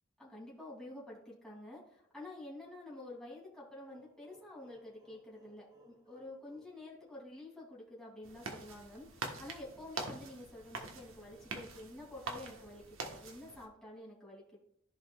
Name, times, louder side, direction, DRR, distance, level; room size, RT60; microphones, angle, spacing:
voice 1, 0.2-14.6, left 1 dB, 5° left, -6 dB, 2.8 m, -49 dB
sound 1, 3.9-7.6, equal, 25° right, 2.7 m, -62 dB
sound 2, 8.2-13.7, right 3 dB, 70° right, 1.3 m, -45 dB
14.5 x 5.2 x 2.4 m, 0.76 s
head